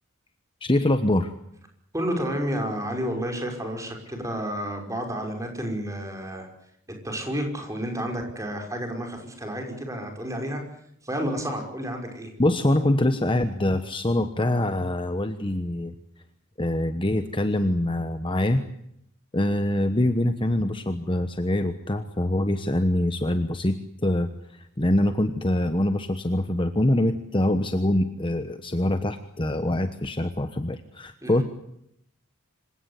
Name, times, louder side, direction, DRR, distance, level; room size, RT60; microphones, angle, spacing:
voice 1, 0.6-1.3 12.4-15.9 16.6-18.6 19.3-31.4, left 1 dB, 25° left, 9 dB, 1.1 m, -24 dB
voice 2, 1.9-6.5 7.0-10.6 11.0-12.3 31.2-31.4, equal, 15° right, 3 dB, 5.7 m, -30 dB
26.5 x 17.0 x 9.9 m, 0.75 s
head